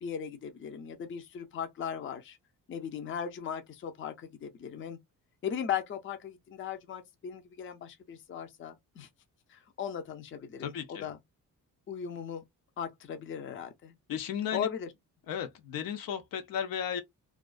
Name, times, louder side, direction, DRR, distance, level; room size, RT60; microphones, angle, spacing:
voice 1, 0.0-2.4 2.7-5.0 5.4-9.1 9.5-11.2 11.9-12.4 12.8-13.9 14.5-14.9, left 8 dB, 35° left, 0.5 m, -37 dB
voice 2, 10.6-11.1 14.1-14.7 15.3-17.0, left 8 dB, 85° left, 0.7 m, -34 dB
2.4 x 2.2 x 2.3 m
cardioid pair, 140°, 33 cm